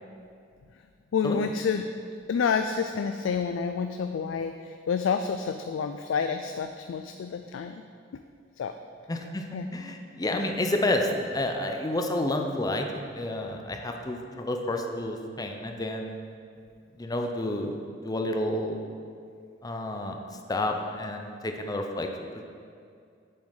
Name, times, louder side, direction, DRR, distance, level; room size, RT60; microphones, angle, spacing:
voice 1, 1.1-1.9 2.3-7.8 8.6-8.7 9.5-9.8, left 6 dB, 80° left, 7 dB, 0.3 m, -29 dB
voice 2, 9.1-9.5 9.7-12.9 13.1-16.2 17.0-17.8 18.0-18.8 19.6-20.2 20.5-22.1 22.3-22.4, left 1 dB, 20° left, 3 dB, 0.5 m, -30 dB
7.8 x 7.2 x 3.9 m, 2.3 s
head